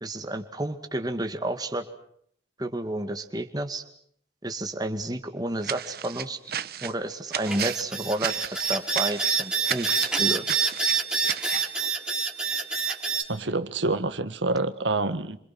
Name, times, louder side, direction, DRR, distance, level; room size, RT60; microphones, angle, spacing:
voice 1, 0.0-1.8 2.6-3.8 4.4-6.4 6.8-8.3 8.7-10.4, right 1 dB, 20° right, 6 dB, 2.2 m, -30 dB
sound 1, 5.6-11.8, right 9 dB, 55° right, 1.1 m, -34 dB
sound 2, 7.5-13.2, right 5 dB, 5° right, 4.2 m, -26 dB
voice 2, 13.3-15.4, right 2 dB, 85° right, 10 dB, 1.7 m, -27 dB
28.5 x 26.5 x 6.1 m, 0.66 s
head